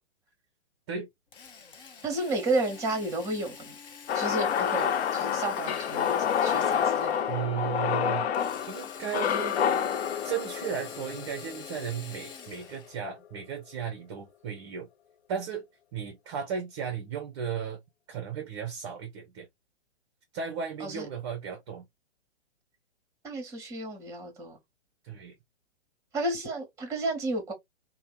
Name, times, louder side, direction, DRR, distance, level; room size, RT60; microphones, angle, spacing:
Drill, 1.3-7.4 8.3-13.0, left 6 dB, 50° left, 0.8 m, -47 dB
voice 1, 2.0-3.7 4.1-7.2 20.8-21.1 23.2-24.6 26.1-27.5, right 2 dB, 10° right, 1.0 m, -32 dB
sound 1, 4.1-12.2, left 8 dB, 70° left, 0.5 m, -28 dB
voice 2, 7.3-8.3 8.7-9.6 10.2-14.9 15.3-15.7 15.9-17.8 18.1-19.5 20.3-21.8 25.0-25.3, right 7 dB, 25° right, 0.5 m, -35 dB
2.7 x 2.1 x 3.1 m
figure-of-eight pair, 125°, 33 cm